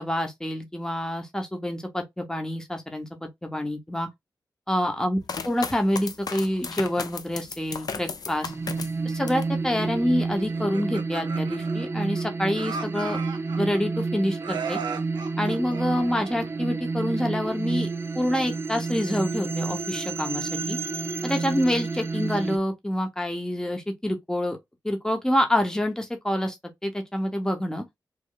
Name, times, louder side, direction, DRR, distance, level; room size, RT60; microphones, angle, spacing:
voice 1, 0.0-4.1 4.7-8.5 9.0-13.2 13.6-14.8 15.4-17.9 18.1-20.8 21.2-24.6 24.8-26.6 26.8-27.8, left 1 dB, 10° left, 1.0 m, -27 dB
sound 1, 5.3-9.6 10.0-10.6, left 5 dB, 60° left, 0.6 m, -35 dB
sound 2, 8.4-22.6, right 4 dB, 35° right, 0.4 m, -30 dB
Laughter, 10.5-12.2 12.5-14.0 14.4-16.7, right 5 dB, 85° right, 0.6 m, -37 dB
3.2 x 2.2 x 3.8 m
cardioid pair, 55°, 8 cm